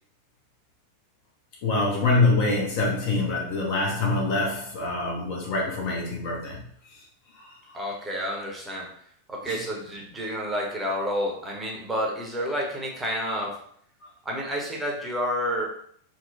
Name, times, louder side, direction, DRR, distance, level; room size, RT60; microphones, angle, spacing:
voice 1, 1.6-6.6 7.3-7.6 9.5-9.6, left 3 dB, 45° left, -2 dB, 0.6 m, -25 dB
voice 2, 7.7-8.9 9.3-13.6 14.2-15.7, equal, 10° right, -2 dB, 0.6 m, -29 dB
2.9 x 2.0 x 2.3 m, 0.63 s
figure-of-eight pair, 90°, 0 cm